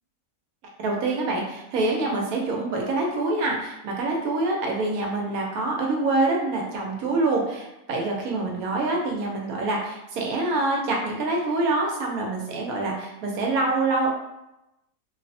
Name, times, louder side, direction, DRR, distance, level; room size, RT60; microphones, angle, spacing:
voice 1, 0.8-14.1, right 2 dB, 90° right, -1 dB, 1.1 m, -25 dB
2.7 x 2.0 x 2.6 m, 0.90 s
omnidirectional pair, 1.5 m